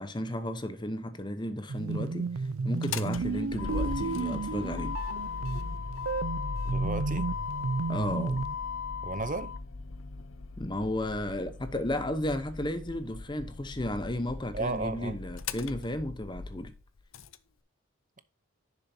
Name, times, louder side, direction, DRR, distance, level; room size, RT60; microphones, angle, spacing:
voice 1, 0.0-2.3 2.6-5.0 7.9-8.5 10.6-16.7, left 1 dB, 20° left, 0.9 m, -34 dB
sound 1, 1.7-8.5, right 4 dB, 90° right, 0.5 m, -33 dB
Motor vehicle (road), 2.7-17.4, left 4 dB, 70° left, 0.7 m, -38 dB
voice 2, 6.6-7.3 9.0-9.5 14.5-15.2, right 3 dB, 40° right, 0.7 m, -34 dB
10.5 x 6.9 x 2.8 m
head